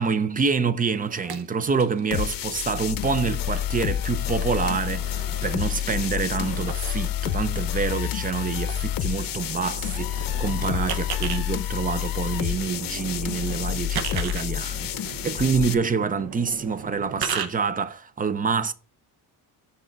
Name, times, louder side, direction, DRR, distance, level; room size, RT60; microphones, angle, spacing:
voice 1, 0.0-18.7, right 5 dB, 20° right, 0.5 m, -27 dB
sound 1, 0.9-2.1 2.7-2.9 3.9-7.0 8.7-8.8 9.0-11.4 12.1-17.5, right 7 dB, 75° right, 1.1 m, -37 dB
sound 2, 2.1-15.7, left 11 dB, 60° left, 0.7 m, -28 dB
6.2 x 4.2 x 4.5 m
cardioid pair, 130°, 38 cm